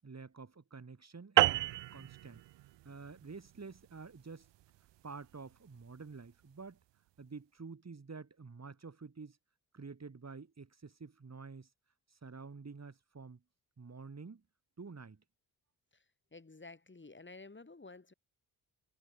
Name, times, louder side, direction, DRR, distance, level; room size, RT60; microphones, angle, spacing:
voice 1, 0.0-2.4 2.8-4.5 5.0-6.8 7.2-9.4 9.7-11.7 12.1-13.4 13.8-14.4 14.8-15.2, right 4 dB, 35° right, 7.3 m, -49 dB
sound 1, 1.4-6.1, right 15 dB, 75° right, 1.5 m, -33 dB
voice 2, 16.3-18.1, left 3 dB, 25° left, 4.6 m, -52 dB
hypercardioid pair, 50°, 44 cm